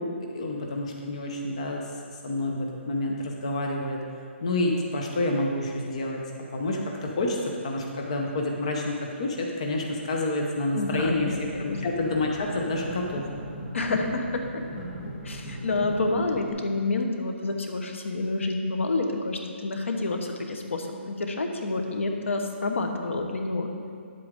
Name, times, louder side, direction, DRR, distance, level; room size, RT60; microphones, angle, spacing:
voice 1, 0.0-1.8 2.2-4.0 4.4-6.2 6.5-13.2, left 2 dB, 30° left, 0 dB, 0.6 m, -28 dB
voice 2, 10.7-11.8 13.7-14.6 15.2-23.7, left 2 dB, 75° left, 4 dB, 1.1 m, -28 dB
sound 1, 10.8-16.5, equal, 10° left, 1.0 m, -38 dB
9.4 x 7.8 x 3.6 m, 2.3 s
hypercardioid pair, 180°, 7 cm